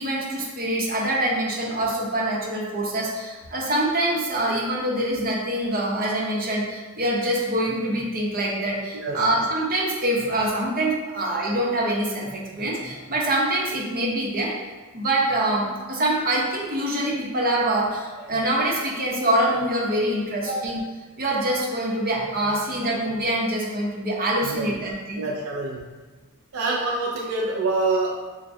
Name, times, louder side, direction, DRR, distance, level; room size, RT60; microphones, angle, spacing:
voice 1, 0.0-14.5 14.9-20.8 21.2-25.3, right 1 dB, 45° right, -3 dB, 0.9 m, -25 dB
voice 2, 8.9-9.3 20.4-20.5 24.4-24.8 25.2-25.9 26.5-28.1, right 3 dB, 75° right, -3 dB, 0.5 m, -26 dB
6.7 x 2.3 x 2.6 m, 1.3 s
head